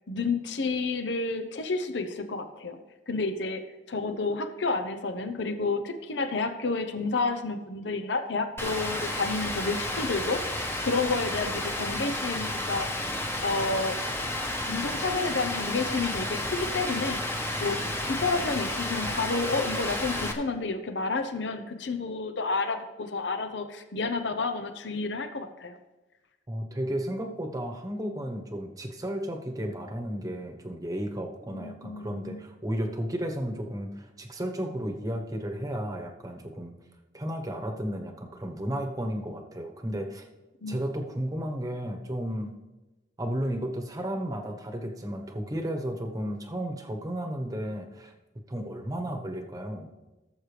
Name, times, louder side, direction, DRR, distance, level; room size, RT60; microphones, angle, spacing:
voice 1, 0.1-2.8 3.1-13.1 13.4-14.0 14.7-17.2 17.6-25.8 31.5-32.4 40.6-40.8, left 3 dB, 75° left, 9 dB, 0.8 m, -30 dB
Rain, 8.6-20.3, left 1 dB, 15° left, 1.0 m, -31 dB
voice 2, 26.5-36.7 37.1-40.3 40.7-42.5 43.2-48.1 48.5-49.9, equal, 20° right, 4 dB, 1.0 m, -33 dB
17.0 x 7.3 x 3.3 m, 1.1 s
head